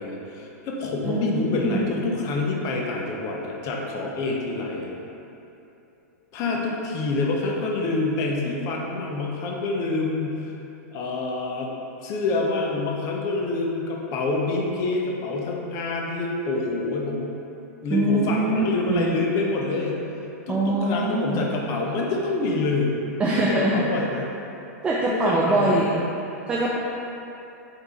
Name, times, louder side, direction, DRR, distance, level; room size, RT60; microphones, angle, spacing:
voice 1, 0.0-4.9 6.3-10.5 10.9-11.7 12.0-17.4 17.8-20.0 20.5-24.3 25.1-26.0, left 3 dB, 35° left, -1 dB, 0.7 m, -27 dB
voice 2, 1.1-1.9 17.9-19.2 20.5-21.5 23.2-23.9 24.8-26.0 26.5-26.8, right 2 dB, 10° right, -4 dB, 0.3 m, -23 dB
4.3 x 2.7 x 4.4 m, 2.9 s
hypercardioid pair, 130°, 9 cm